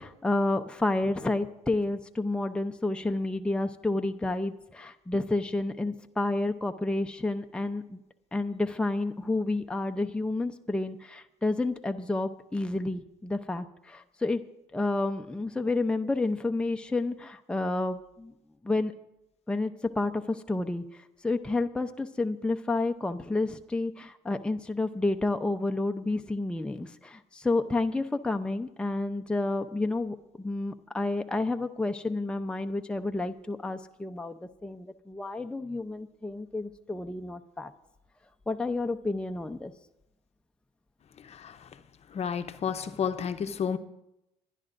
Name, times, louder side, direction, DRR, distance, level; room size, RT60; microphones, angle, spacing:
voice 1, 0.0-8.0 8.3-14.4 14.7-18.3 18.6-18.9 19.5-20.8 21.2-37.7 38.5-39.7, left 2 dB, 5° left, 5 dB, 0.7 m, -30 dB
voice 2, 42.1-43.8, left 7 dB, 45° left, 9 dB, 0.8 m, -31 dB
27.0 x 11.0 x 2.6 m, 0.88 s
supercardioid pair, 80°, 15 cm